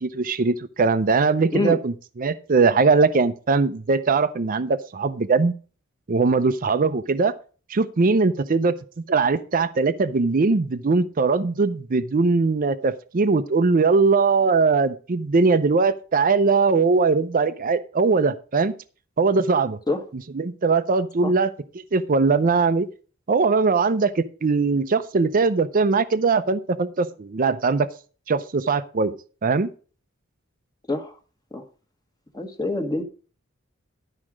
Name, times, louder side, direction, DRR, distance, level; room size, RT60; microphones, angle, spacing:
voice 1, 0.0-5.5 6.1-7.3 7.7-8.8 9.1-18.7 19.2-19.8 20.3-21.5 21.9-22.9 23.3-27.9 28.3-29.1 29.4-29.7, right 4 dB, 40° right, 10 dB, 0.5 m, -20 dB
voice 2, 32.3-33.0, left 2 dB, 20° left, 5 dB, 1.3 m, -25 dB
12.0 x 4.9 x 6.1 m, 0.38 s
head